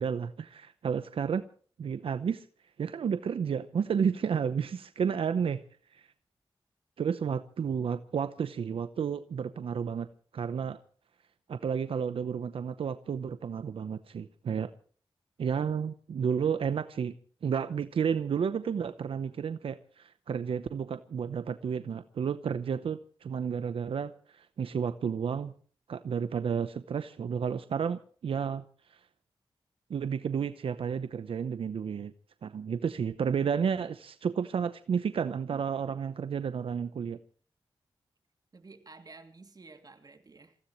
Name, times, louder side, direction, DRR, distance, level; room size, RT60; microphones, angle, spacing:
voice 1, 0.0-1.5 1.8-2.5 2.8-5.6 5.9-6.1 7.0-10.1 10.3-10.8 11.5-14.7 15.4-17.1 17.4-25.5 25.9-28.6 28.9-29.0 29.9-32.1 32.4-37.2, right 7 dB, 90° right, 0.8 m, -31 dB
voice 2, 35.5-35.8 38.5-40.6, right 3 dB, 45° right, 2.8 m, -52 dB
27.5 x 16.0 x 3.1 m
wide cardioid pair, 80°, 9 cm